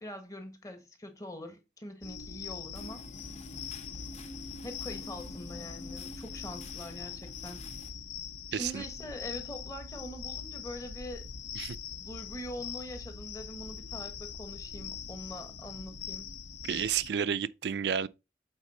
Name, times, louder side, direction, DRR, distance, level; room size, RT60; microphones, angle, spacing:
voice 1, 0.0-3.0 4.6-7.6 8.5-11.3 12.0-16.3, left 1 dB, 20° left, 1.2 m, -43 dB
sound 1, 2.0-17.1, left 7 dB, 80° left, 0.7 m, -42 dB
sound 2, 2.7-7.9, left 2 dB, 35° left, 1.0 m, -47 dB
voice 2, 8.5-8.8 11.6-11.8 16.6-18.1, right 8 dB, 70° right, 0.4 m, -31 dB
8.2 x 4.1 x 4.2 m
head